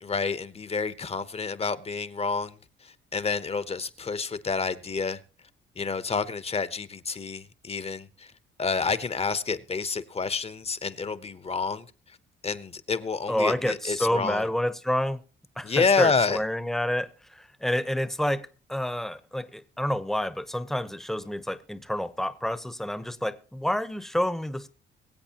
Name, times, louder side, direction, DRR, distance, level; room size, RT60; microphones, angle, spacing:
voice 1, 0.0-2.6 3.1-5.2 5.8-8.3 8.6-11.8 12.4-14.4 15.6-16.4, left 4 dB, 30° left, 0.9 m, -28 dB
voice 2, 13.3-15.2 15.6-24.7, left 1 dB, ahead, 0.9 m, -29 dB
23.0 x 8.0 x 2.9 m
cardioid pair, 90°, 20 cm